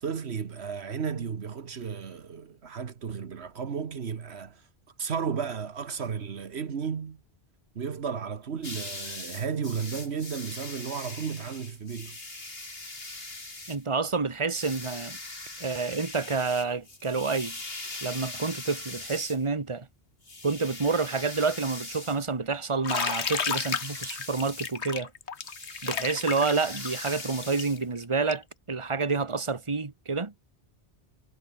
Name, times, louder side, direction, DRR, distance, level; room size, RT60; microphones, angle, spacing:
voice 1, 0.0-4.6 5.0-7.2 7.7-12.2, right 6 dB, 75° right, 1.5 m, -33 dB
sound 1, 8.6-13.8 14.5-19.4 20.2-22.2 22.9-24.8 25.4-27.8, left 2 dB, 60° left, 4.2 m, -41 dB
voice 2, 13.7-15.2 15.6-17.6 18.0-19.9 20.4-25.1 25.8-30.3, right 4 dB, 30° right, 1.5 m, -29 dB
Bathtub (filling or washing), 22.8-28.5, left 6 dB, 80° left, 1.6 m, -32 dB
omnidirectional pair, 1.1 m